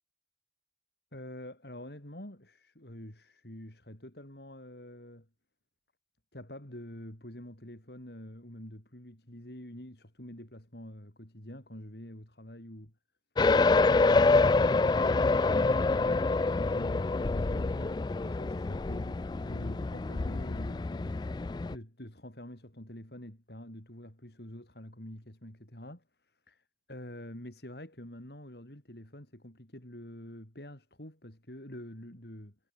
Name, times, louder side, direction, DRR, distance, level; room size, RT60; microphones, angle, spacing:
voice 1, 1.1-5.3 6.3-12.9 14.0-32.6, left 1 dB, 65° left, 5.0 m, -47 dB
sound 1, 13.4-21.8, left 3 dB, 25° left, 0.3 m, -26 dB
head